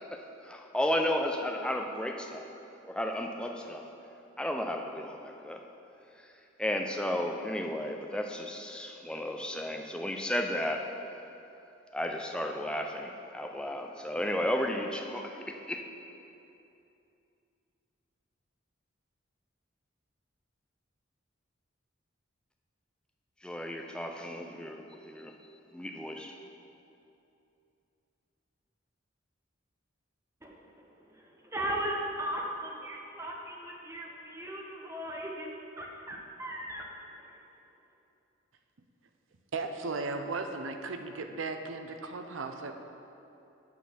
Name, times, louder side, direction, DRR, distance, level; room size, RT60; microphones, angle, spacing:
voice 1, 0.0-2.5 2.9-3.8 4.4-5.6 6.2-6.3 6.6-10.9 11.9-15.8 23.4-25.3 25.7-26.4, left 1 dB, 5° left, 2 dB, 0.4 m, -33 dB
voice 2, 30.4-35.5 35.8-36.9 37.2-37.3, right 1 dB, 15° right, -1 dB, 0.8 m, -37 dB
voice 3, 39.5-42.7, right 3 dB, 75° right, 6 dB, 0.5 m, -36 dB
8.6 x 4.0 x 6.9 m, 2.8 s
head